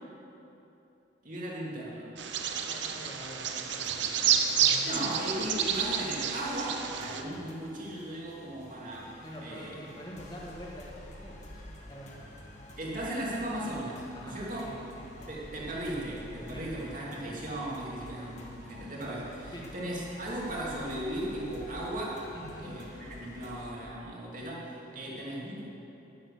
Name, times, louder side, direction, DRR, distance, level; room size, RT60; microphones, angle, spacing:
voice 1, 1.2-2.1 4.8-9.1 9.4-9.7 12.8-14.7 15.3-22.2 22.6-25.6, right 1 dB, 45° right, -5 dB, 2.7 m, -37 dB
Bird vocalization bird call bird song, 2.2-7.2, right 8 dB, 70° right, 0.8 m, -29 dB
voice 2, 2.7-5.0 9.2-12.2 14.1-15.3 16.5-16.7 19.5-19.6 22.3-22.7 24.9-25.0, equal, 20° left, -3 dB, 1.8 m, -46 dB
sound 1, 3.8-23.7, left 1 dB, 40° left, 1.7 m, -49 dB
11.0 x 11.0 x 6.7 m, 3.0 s
head